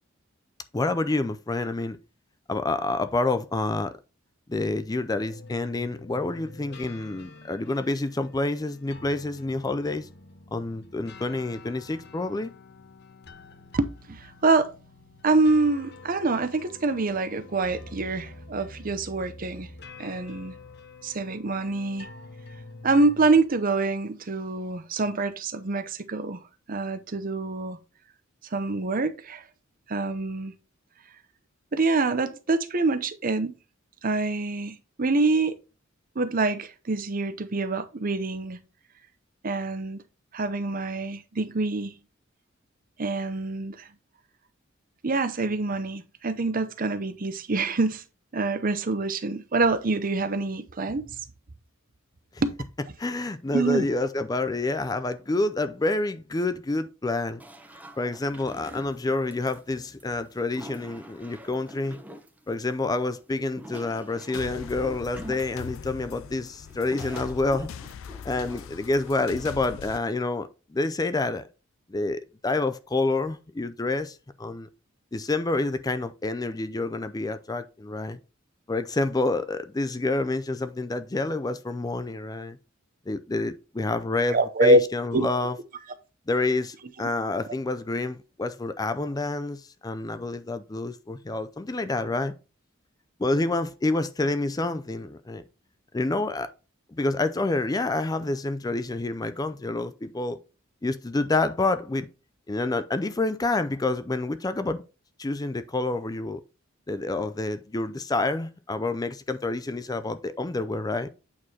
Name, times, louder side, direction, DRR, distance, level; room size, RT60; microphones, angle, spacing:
voice 1, 0.7-2.0 2.5-3.9 4.5-10.1 10.5-12.5 53.0-57.4 58.0-62.0 62.5-67.7 68.2-71.5 71.9-74.7 75.1-78.2 78.7-82.6 83.1-85.6 86.3-92.3 93.2-95.4 95.9-96.5 96.9-100.4 100.8-102.1 102.5-104.8 105.2-106.4 106.9-111.1, left 2 dB, 20° left, 0.4 m, -28 dB
sound 1, 5.1-23.3, left 2 dB, 55° left, 1.0 m, -47 dB
voice 2, 13.7-14.7 15.2-19.7 20.0-20.5 21.0-22.1 22.8-26.4 26.7-27.8 28.5-29.4 29.9-30.5 31.7-33.5 34.0-35.5 36.2-38.6 39.4-40.0 40.3-41.9 43.0-43.9 45.0-48.0 48.3-51.2 52.4-52.6 53.5-53.9 84.3-84.8 85.1-85.3, right 3 dB, 45° right, 0.7 m, -25 dB
sound 2, 57.4-69.5, right 1 dB, 10° right, 0.9 m, -45 dB
sound 3, 64.3-70.0, left 7 dB, 85° left, 0.4 m, -41 dB
8.5 x 4.8 x 2.8 m
head